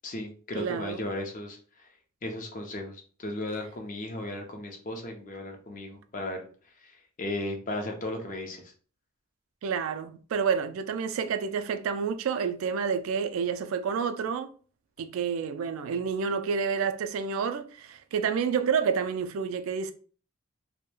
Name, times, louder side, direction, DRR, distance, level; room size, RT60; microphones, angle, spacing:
voice 1, 0.0-1.6 2.2-6.5 6.8-8.7, left 1 dB, 40° left, 0.5 m, -35 dB
voice 2, 0.5-1.1 9.6-14.5 15.0-19.9, right 6 dB, 80° right, 0.3 m, -29 dB
3.0 x 2.1 x 2.2 m
head